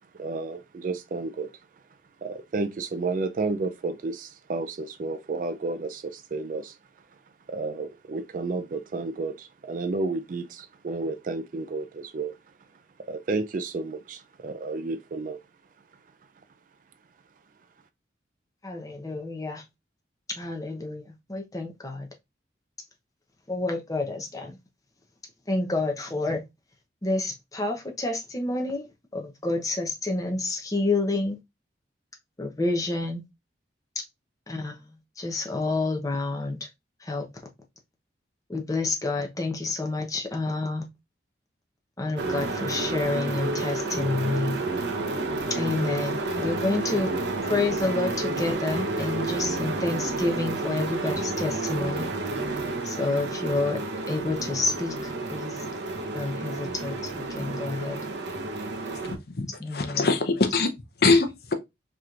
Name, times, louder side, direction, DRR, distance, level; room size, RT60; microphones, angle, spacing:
voice 1, 0.1-1.5 2.2-6.8 7.5-12.4 13.1-15.4, right 3 dB, 45° right, 0.3 m, -31 dB
voice 2, 18.6-19.6 20.3-22.1 23.5-24.6 25.5-26.4 27.0-28.9 29.1-31.4 32.4-33.2 34.5-36.7 37.0-37.3 38.5-40.9 42.0-44.6 45.5-47.1 47.4-52.1 52.8-53.8 54.1-55.6 56.1-58.0 59.6-60.1, left 2 dB, 20° left, 0.7 m, -29 dB
sound 1, 42.2-59.2, right 2 dB, 65° right, 0.8 m, -30 dB
voice 3, 59.1-59.5 59.7-60.7 61.0-61.5, left 3 dB, 55° left, 0.7 m, -22 dB
4.8 x 3.0 x 2.4 m
head